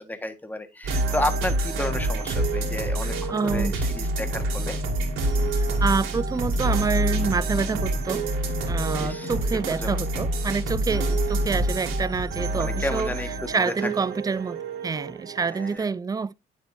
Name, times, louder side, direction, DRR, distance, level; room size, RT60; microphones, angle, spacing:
voice 1, 0.0-4.8 9.0-9.3 9.7-10.0 12.5-13.9 15.4-15.9, left 1 dB, 10° left, 1.3 m, -32 dB
sound 1, 0.8-15.8, right 1 dB, 85° right, 2.3 m, -27 dB
sound 2, 1.7-12.1, left 5 dB, 50° left, 3.6 m, -40 dB
voice 2, 3.3-3.7 5.5-8.2 8.6-13.1 13.5-16.3, right 5 dB, 20° right, 0.4 m, -27 dB
9.1 x 7.0 x 2.5 m
cardioid pair, 90°, 20 cm